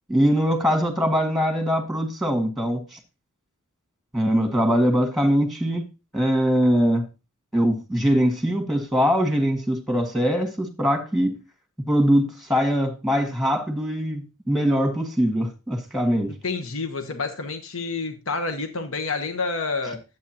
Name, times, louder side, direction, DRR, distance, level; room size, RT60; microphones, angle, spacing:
voice 1, 0.1-3.0 4.1-5.9 6.1-7.1 7.5-11.4 11.9-16.3, equal, ahead, 1.8 m, -22 dB
voice 2, 16.0-20.0, left 4 dB, 70° left, 1.1 m, -29 dB
11.0 x 8.1 x 2.9 m
head